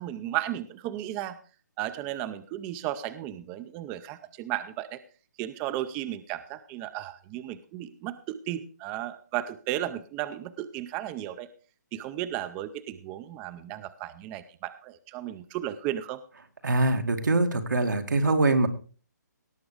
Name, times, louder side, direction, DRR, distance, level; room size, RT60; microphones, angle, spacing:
voice 1, 0.0-1.4 1.8-5.0 5.4-11.5 11.9-16.2, right 13 dB, 15° right, 13 dB, 0.5 m, -34 dB
voice 2, 16.6-18.7, right 2 dB, 90° right, 5 dB, 2.3 m, -23 dB
17.5 x 7.0 x 4.9 m, 0.38 s
hypercardioid pair, 160°, 10 cm